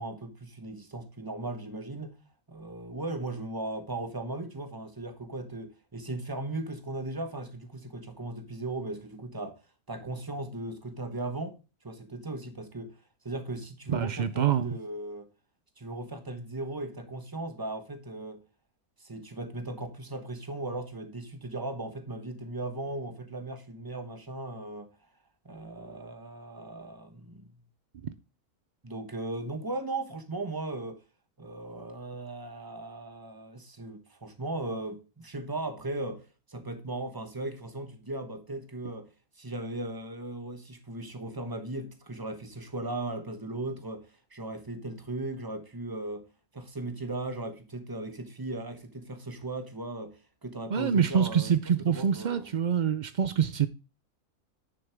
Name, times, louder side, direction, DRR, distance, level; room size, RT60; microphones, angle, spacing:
voice 1, 0.0-2.1 2.5-9.6 9.9-11.6 11.8-12.9 13.2-15.3 15.8-18.4 19.0-24.9 25.4-27.5 28.8-31.0 31.4-46.3 46.5-52.6, right 2 dB, 15° right, 1.0 m, -37 dB
voice 2, 13.9-14.8 50.7-53.7, right 7 dB, 80° right, 0.4 m, -26 dB
9.3 x 6.9 x 3.4 m
omnidirectional pair, 1.5 m